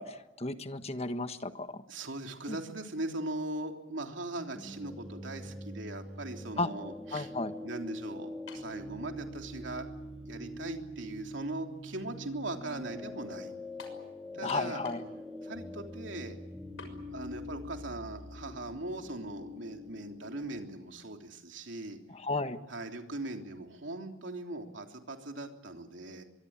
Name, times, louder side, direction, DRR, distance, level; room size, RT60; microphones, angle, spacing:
voice 1, 0.0-1.8 2.5-2.6 6.6-6.7 7.1-7.5 14.4-15.0 22.1-22.6, left 2 dB, 30° left, 10 dB, 1.5 m, -34 dB
voice 2, 1.9-7.3 7.6-9.9 10.3-13.5 14.3-14.8 15.4-16.4 17.1-22.0 22.7-26.2, right 2 dB, 65° right, 4 dB, 3.4 m, -40 dB
sound 1, 4.5-20.6, left 1 dB, ahead, 3.0 m, -44 dB
sound 2, 8.5-8.8 9.7-9.8 13.8-14.0 14.5-15.1 15.4-15.5 16.8-17.0, left 3 dB, 90° left, 6.3 m, -47 dB
24.5 x 23.0 x 8.9 m, 0.97 s
head